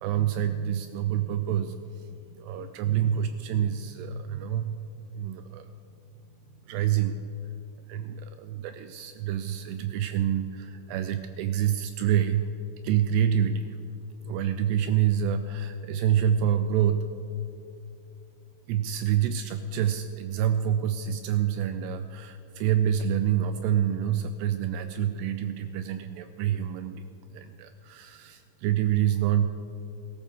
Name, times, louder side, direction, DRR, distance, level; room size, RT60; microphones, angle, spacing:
voice 1, 0.0-1.7 2.4-4.7 5.2-5.7 6.7-7.1 7.9-12.5 12.8-13.7 14.2-17.1 18.7-27.0 27.3-29.5, right 9 dB, 85° right, 10 dB, 2.4 m, -27 dB
17.5 x 13.5 x 3.6 m, 2.7 s
omnidirectional pair, 5.3 m